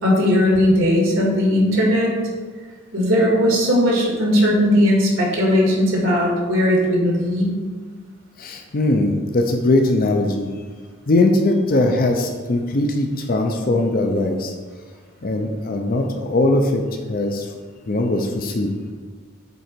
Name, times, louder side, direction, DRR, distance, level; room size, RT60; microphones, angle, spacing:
voice 1, 0.0-2.2 2.9-7.5, equal, 75° right, -2 dB, 2.1 m, -18 dB
voice 2, 8.4-10.5 11.1-14.5 15.2-16.8 17.1-17.5 17.9-18.7, left 2 dB, 45° left, 4 dB, 0.5 m, -20 dB
8.1 x 3.8 x 4.5 m, 1.5 s
head